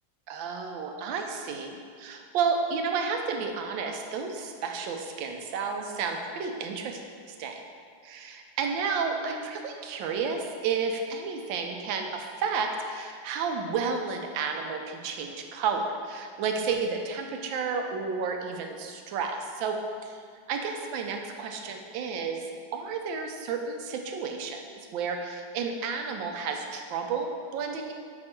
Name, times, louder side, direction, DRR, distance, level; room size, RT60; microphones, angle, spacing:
voice 1, 0.3-7.0 7.4-7.6 8.0-8.2 8.6-20.2 20.5-22.4 22.7-24.6 24.9-27.9, right 5 dB, 85° right, 4 dB, 1.4 m, -31 dB
5.3 x 4.3 x 4.3 m, 2.1 s
omnidirectional pair, 2.0 m